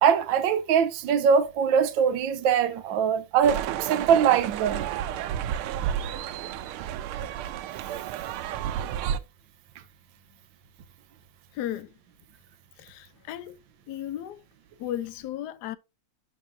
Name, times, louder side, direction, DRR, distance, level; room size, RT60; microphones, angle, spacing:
voice 1, 0.0-4.9, right 7 dB, 70° right, 1.4 m, -22 dB
sound 1, 3.4-9.2, right 10 dB, 90° right, 1.5 m, -31 dB
voice 2, 11.5-11.9 12.8-13.6 13.9-14.4 14.8-15.8, left 12 dB, 75° left, 0.9 m, -35 dB
11.0 x 4.7 x 2.6 m
omnidirectional pair, 2.4 m